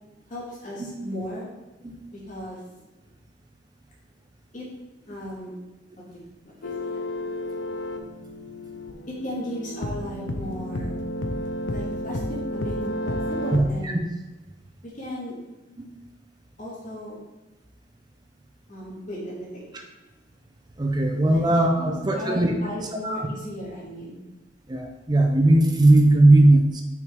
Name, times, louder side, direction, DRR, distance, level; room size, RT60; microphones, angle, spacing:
voice 1, 0.3-1.5 2.1-2.6 4.5-4.7 5.1-5.5 6.1-7.0 9.1-10.9 11.7-14.0 14.8-15.3 16.6-17.2 18.7-19.6 21.3-21.4 21.8-24.2, left 1 dB, 45° left, -6 dB, 2.0 m, -36 dB
sound 1, 6.6-13.9, left 1 dB, 75° left, 0.6 m, -31 dB
voice 2, 13.5-13.9 15.8-15.9 20.8-22.5 23.0-23.3 24.7-26.8, right 2 dB, 25° right, 3 dB, 0.6 m, -19 dB
6.4 x 5.5 x 3.5 m, 1.1 s
head